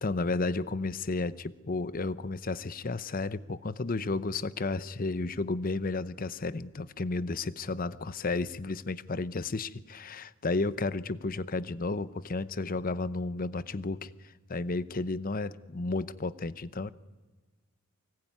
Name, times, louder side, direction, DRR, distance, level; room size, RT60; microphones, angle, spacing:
voice 1, 0.0-14.1 14.5-16.9, left 3 dB, 45° left, 16 dB, 0.8 m, -32 dB
24.5 x 21.0 x 9.5 m, 1.3 s
head